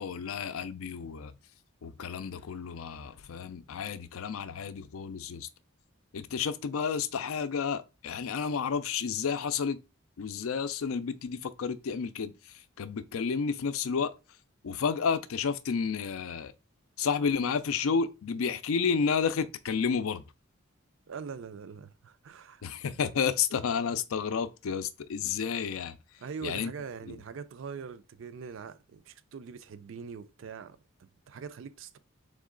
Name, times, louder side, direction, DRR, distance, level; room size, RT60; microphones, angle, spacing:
voice 1, 0.0-1.3 1.8-5.5 6.1-9.8 10.2-14.1 14.6-16.5 17.0-20.2 22.6-26.0 26.4-26.7 27.1-27.2, left 6 dB, 80° left, 0.4 m, -31 dB
voice 2, 21.1-22.6 26.2-32.0, right 6 dB, 65° right, 0.4 m, -43 dB
3.6 x 3.1 x 3.7 m
head